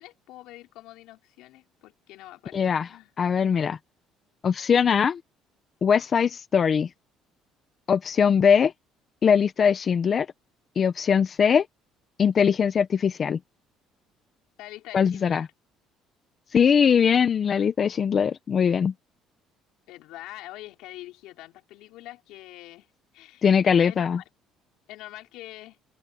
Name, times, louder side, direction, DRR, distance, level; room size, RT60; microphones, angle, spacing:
voice 1, 0.0-2.6 2.9-3.1 14.6-15.5 19.9-24.2 24.9-25.8, left 17 dB, 80° left, 5.0 m, -45 dB
voice 2, 2.5-2.9 3.2-3.8 4.4-5.2 5.8-6.9 7.9-8.7 9.2-10.3 10.8-11.7 12.2-13.4 14.9-15.5 16.5-18.9 23.4-24.2, left 7 dB, 40° left, 1.2 m, -21 dB
open air
cardioid pair, 105°, 0 cm